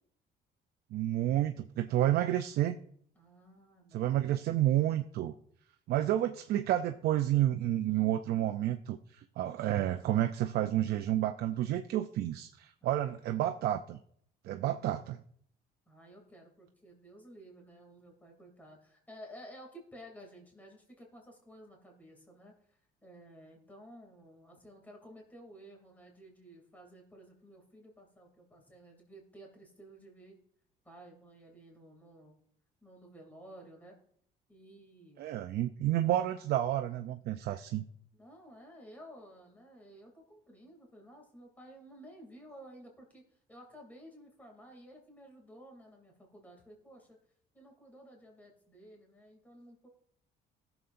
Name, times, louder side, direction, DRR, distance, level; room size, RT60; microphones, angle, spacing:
voice 1, 0.9-2.8 3.9-5.3 5.9-14.0 14.4-15.2 35.2-37.8, right 13 dB, 70° right, 7 dB, 0.5 m, -30 dB
voice 2, 3.1-4.1 12.8-13.1 15.9-30.4 30.8-32.4 32.8-33.9 34.5-35.3 38.1-47.2 47.5-49.9, equal, 10° left, 1 dB, 2.7 m, -54 dB
18.5 x 7.0 x 2.6 m, 0.65 s
cardioid pair, 110°, 17 cm